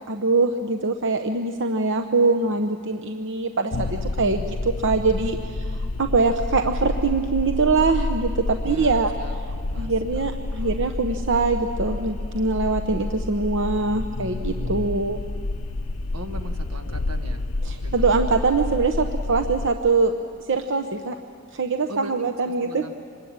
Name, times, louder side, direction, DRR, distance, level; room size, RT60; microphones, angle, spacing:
voice 1, 0.1-9.1 9.8-15.2 17.6-20.1 20.5-21.2 21.5-22.8, right 3 dB, 60° right, 5 dB, 0.9 m, -23 dB
sound 1, 3.7-19.7, left 2 dB, 90° left, 0.8 m, -29 dB
voice 2, 8.6-9.4 9.7-10.8 16.1-17.5 17.8-18.3 21.9-22.9, right 1 dB, 80° right, 6 dB, 1.6 m, -40 dB
25.5 x 20.5 x 8.8 m, 2.2 s
head